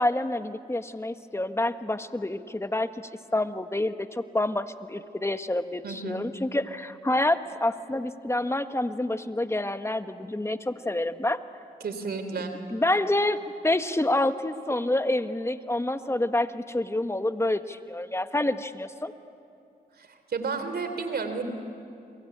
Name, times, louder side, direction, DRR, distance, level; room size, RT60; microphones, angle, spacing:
voice 1, 0.0-2.9 3.3-11.4 12.7-19.1, left 1 dB, 15° left, 9 dB, 1.4 m, -27 dB
voice 2, 5.8-6.2 11.8-12.6 19.9-21.4, right 4 dB, 75° right, 8 dB, 3.2 m, -32 dB
28.5 x 23.0 x 8.8 m, 2.6 s
cardioid pair, 50°, 17 cm